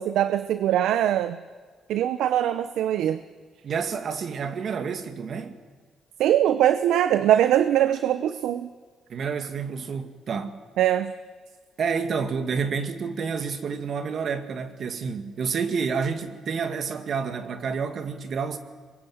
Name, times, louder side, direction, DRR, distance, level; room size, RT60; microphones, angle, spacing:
voice 1, 0.0-1.4 1.9-3.2 6.2-8.7 10.8-11.1, right 11 dB, 85° right, 0.7 m, -22 dB
voice 2, 3.6-5.6 9.1-10.6 11.8-18.6, right 5 dB, 55° right, 2.0 m, -29 dB
24.5 x 21.5 x 7.9 m
cardioid pair, 90°, 0 cm